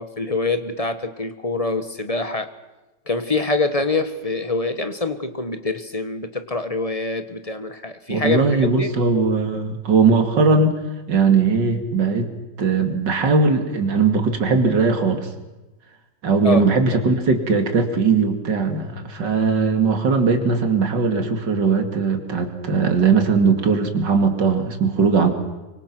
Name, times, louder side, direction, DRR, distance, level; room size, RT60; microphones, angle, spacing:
voice 1, 0.0-2.5 3.1-8.9 16.4-16.6, left 3 dB, 20° left, 9 dB, 1.3 m, -25 dB
voice 2, 8.1-10.7 11.1-12.3 12.6-15.3 16.2-25.3, right 4 dB, 75° right, 5 dB, 3.0 m, -19 dB
25.0 x 24.5 x 6.1 m, 1.1 s
omnidirectional pair, 1.9 m